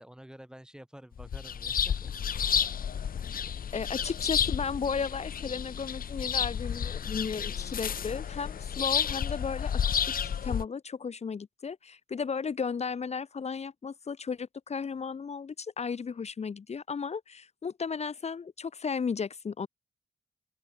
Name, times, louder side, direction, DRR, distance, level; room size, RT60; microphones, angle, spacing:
voice 1, 0.0-2.1, equal, 5° right, 1.7 m, -49 dB
sound 1, 1.2-10.7, left 8 dB, 70° left, 1.2 m, -31 dB
voice 2, 3.7-19.7, left 5 dB, 45° left, 1.3 m, -34 dB
open air
wide cardioid pair, 170°, 15 cm